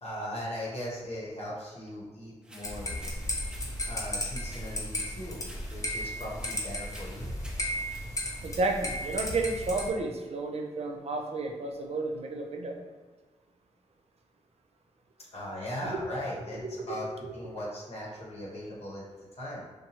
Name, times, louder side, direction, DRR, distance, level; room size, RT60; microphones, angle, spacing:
voice 1, 0.0-2.9 3.9-5.4 5.7-7.3 15.3-17.1 17.3-19.6, equal, 60° left, -6 dB, 0.8 m, -39 dB
sound 1, 2.4-8.1, right 1 dB, 10° right, 0.7 m, -53 dB
sound 2, 2.6-9.9, left 1 dB, 25° left, 0.7 m, -35 dB
voice 2, 8.4-12.8 15.9-16.0 16.6-16.8 17.2-17.3, right 3 dB, 60° right, 3 dB, 0.4 m, -32 dB
2.7 x 2.2 x 2.8 m, 1.4 s
cardioid pair, 60°, 12 cm